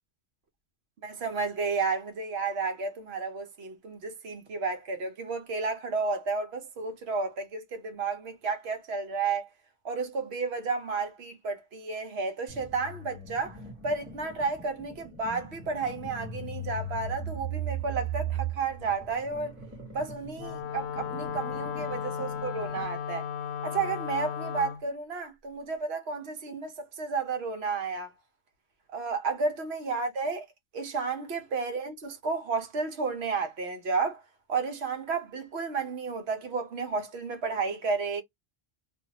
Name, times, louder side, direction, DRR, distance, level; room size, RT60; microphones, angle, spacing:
voice 1, 1.0-9.5 9.8-13.6 13.8-19.6 19.9-23.3 23.6-28.1 28.9-30.4 30.7-34.2 34.5-38.2, right 4 dB, 75° right, 1.0 m, -32 dB
sound 1, 12.5-23.0, right 5 dB, 15° right, 1.3 m, -39 dB
Wind instrument woodwind instrument, 20.3-24.8, left 7 dB, 75° left, 0.8 m, -35 dB
2.6 x 2.2 x 2.8 m
omnidirectional pair, 1.1 m